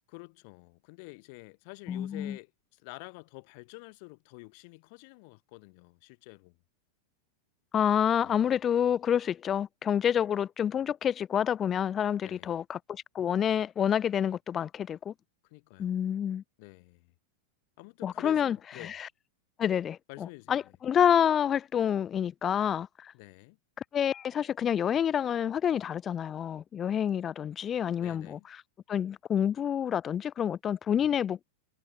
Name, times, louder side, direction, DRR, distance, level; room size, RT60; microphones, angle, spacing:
voice 1, 0.1-6.6 8.2-8.5 12.2-12.6 15.5-16.0 16.6-17.1 17.8-19.0 20.1-20.7 23.1-23.6 28.0-28.5, left 31 dB, 45° left, 3.5 m, -48 dB
voice 2, 1.9-2.4 7.7-15.1 15.8-16.4 18.0-19.1 19.6-23.1 23.9-28.4 28.9-31.5, left 9 dB, 25° left, 0.4 m, -28 dB
figure-of-eight pair, 90°, 0 cm